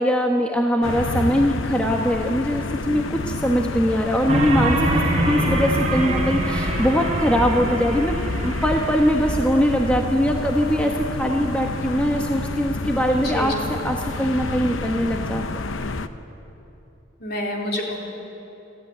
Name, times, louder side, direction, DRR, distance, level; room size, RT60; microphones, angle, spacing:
voice 1, 0.0-8.2 8.4-15.4, equal, 5° left, 1 dB, 1.1 m, -22 dB
sound 1, 0.8-16.1, left 2 dB, 75° left, 0.8 m, -29 dB
sound 2, 4.3-10.0, right 1 dB, 35° right, 4.2 m, -24 dB
voice 2, 13.2-13.5 17.2-18.0, left 1 dB, 50° left, -1 dB, 3.5 m, -27 dB
27.0 x 13.5 x 9.3 m, 3.0 s
head